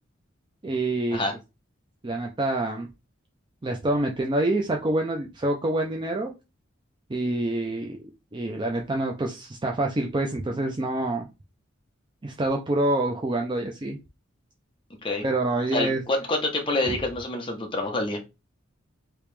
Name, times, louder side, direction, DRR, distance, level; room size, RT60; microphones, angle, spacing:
voice 1, 0.6-1.2 2.0-2.9 3.6-6.3 7.1-8.0 8.3-11.3 12.2-14.0 15.2-16.0 16.9-17.0, right 2 dB, 25° right, 2 dB, 0.4 m, -26 dB
voice 2, 15.7-18.2, left 2 dB, 25° left, 2 dB, 0.9 m, -27 dB
3.2 x 2.9 x 3.3 m, 0.26 s
head